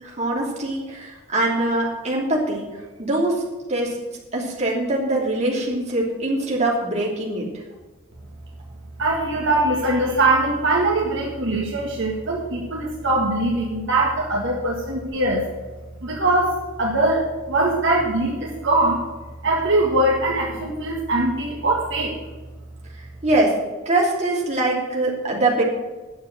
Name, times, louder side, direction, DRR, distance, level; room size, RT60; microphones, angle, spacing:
voice 1, 0.0-2.7 3.0-3.4 3.7-3.9 4.3-7.5 23.2-23.6 23.8-25.6, right 2 dB, 30° right, -3 dB, 3.1 m, -23 dB
voice 2, 9.0-15.4 16.0-19.1 19.4-22.1, right 2 dB, 60° right, -2 dB, 1.9 m, -22 dB
10.0 x 7.3 x 7.7 m, 1.2 s
head